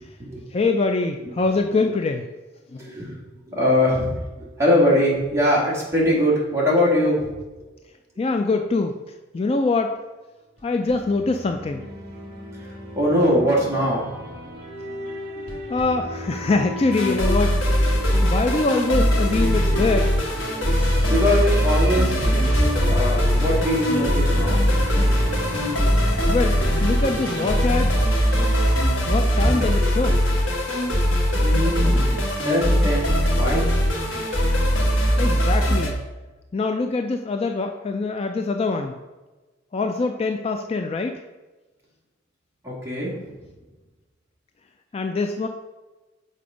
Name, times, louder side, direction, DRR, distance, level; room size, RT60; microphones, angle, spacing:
voice 1, 0.0-0.5 2.8-3.2 3.5-7.3 13.0-14.2 20.7-24.6 31.4-33.8 42.6-43.4, left 1 dB, 15° right, -6 dB, 2.0 m, -22 dB
voice 2, 0.5-2.3 2.7-2.9 8.2-9.0 9.3-10.0 10.6-11.8 15.7-20.1 26.3-27.9 29.1-30.2 35.2-36.0 36.5-39.0 39.7-41.2 44.9-45.5, left 3 dB, 30° left, 5 dB, 0.3 m, -24 dB
sound 1, 10.6-28.9, right 1 dB, 55° right, 1.6 m, -34 dB
sound 2, 16.9-35.9, equal, 85° left, 1.4 m, -20 dB
6.8 x 4.3 x 5.0 m, 1.2 s
head